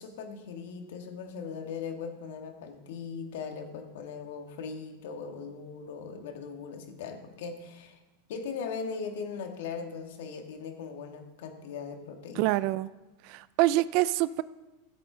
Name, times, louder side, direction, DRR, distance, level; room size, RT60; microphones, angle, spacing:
voice 1, 0.0-8.0 8.3-12.5, left 5 dB, 75° left, 5 dB, 1.6 m, -39 dB
voice 2, 12.4-12.9 13.3-14.4, right 17 dB, 55° right, 17 dB, 0.3 m, -26 dB
16.0 x 7.9 x 3.8 m, 1.1 s
supercardioid pair, 135°, 0 cm